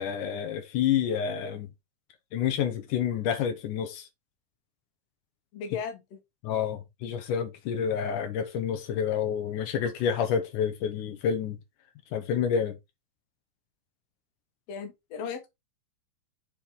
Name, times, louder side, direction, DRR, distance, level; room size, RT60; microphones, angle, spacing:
voice 1, 0.0-1.7 2.3-4.1 6.4-11.6 12.1-12.8, left 8 dB, 80° left, 2.5 m, -28 dB
voice 2, 5.5-6.0 14.7-15.5, left 7 dB, 60° left, 2.3 m, -35 dB
7.5 x 4.6 x 3.6 m
omnidirectional pair, 3.6 m